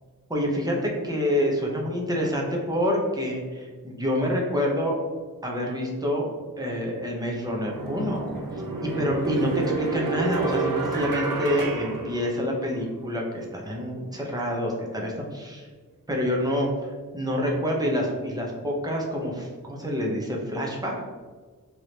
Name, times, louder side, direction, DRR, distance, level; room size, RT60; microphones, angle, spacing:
voice 1, 0.3-5.0 5.4-6.3 6.6-8.3 8.8-15.7 16.1-16.7 17.1-21.0, equal, 10° right, -2 dB, 0.9 m, -27 dB
sound 1, 6.9-7.0 7.6-12.8, right 3 dB, 75° right, 0.7 m, -29 dB
4.7 x 3.1 x 2.9 m, 1.4 s
wide cardioid pair, 55°, 35 cm